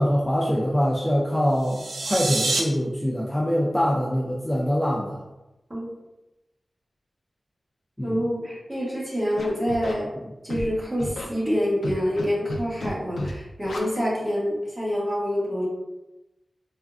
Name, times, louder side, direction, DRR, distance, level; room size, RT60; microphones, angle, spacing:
voice 1, 0.0-5.2 8.0-8.2, equal, 10° left, -4 dB, 0.4 m, -24 dB
sound 1, 1.6-2.6, right 2 dB, 65° right, 0.4 m, -27 dB
voice 2, 8.0-10.1 10.4-15.7, equal, 20° right, -7 dB, 1.1 m, -26 dB
Scratching (performance technique), 9.4-9.9 10.5-10.7 11.0-11.2 11.8-12.2 12.5-12.9 13.2-13.3 13.6-13.8, left 2 dB, 90° left, 0.4 m, -31 dB
3.4 x 2.1 x 2.4 m, 1.0 s
wide cardioid pair, 90°, 0 cm